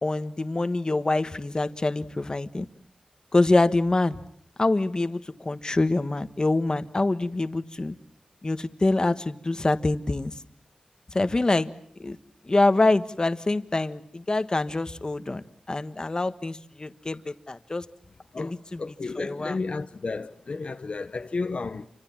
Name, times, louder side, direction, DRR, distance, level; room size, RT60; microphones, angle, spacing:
voice 1, 0.0-2.7 3.3-4.2 4.6-7.9 8.4-10.3 11.1-11.7 12.0-12.2 12.5-17.9 18.4-18.8 19.2-19.6, left 2 dB, 35° left, 1.4 m, -25 dB
voice 2, 18.3-21.9, left 3 dB, 60° left, 1.1 m, -32 dB
29.0 x 25.5 x 7.4 m
wide cardioid pair, 90°, 2 cm